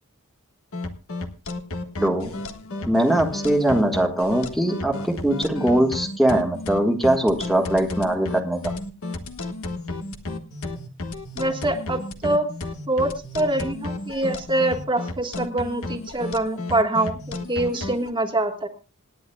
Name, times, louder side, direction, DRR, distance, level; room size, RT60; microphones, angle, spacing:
sound 1, 0.7-18.1, left 2 dB, 65° left, 1.5 m, -32 dB
voice 1, 2.0-2.3 2.9-8.7, right 1 dB, ahead, 2 dB, 1.5 m, -21 dB
voice 2, 11.4-12.5 12.9-18.7, right 2 dB, 20° right, 4 dB, 1.5 m, -24 dB
27.0 x 10.5 x 2.3 m, 0.32 s
head